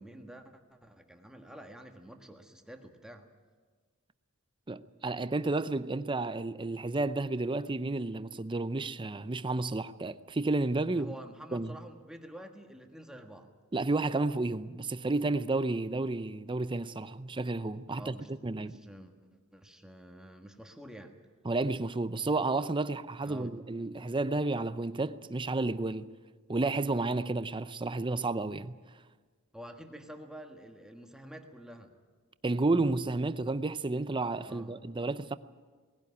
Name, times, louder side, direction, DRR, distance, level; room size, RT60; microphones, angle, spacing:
voice 1, 0.0-3.3 10.9-13.5 17.9-21.1 23.2-23.5 29.5-31.9 34.4-34.7, right 1 dB, 5° right, 1.5 m, -49 dB
voice 2, 4.7-11.1 11.5-11.8 13.7-18.2 18.4-18.8 21.5-26.1 26.5-28.8 32.4-35.4, right 2 dB, 20° right, 0.6 m, -31 dB
19.0 x 16.5 x 9.7 m
head